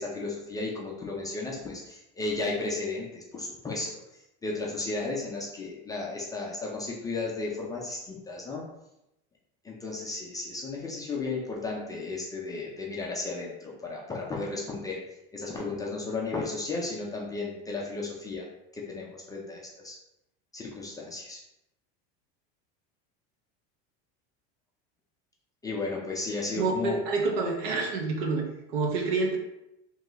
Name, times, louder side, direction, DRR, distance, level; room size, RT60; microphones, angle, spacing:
voice 1, 0.0-4.0 4.4-8.6 9.6-15.0 15.3-18.4 18.7-20.0 20.5-21.4 25.6-27.0, left 3 dB, 10° left, -3 dB, 0.3 m, -34 dB
voice 2, 26.6-28.4 28.7-29.4, right 3 dB, 80° right, 1 dB, 1.0 m, -27 dB
3.1 x 2.9 x 3.7 m, 0.88 s
cardioid pair, 160°, 31 cm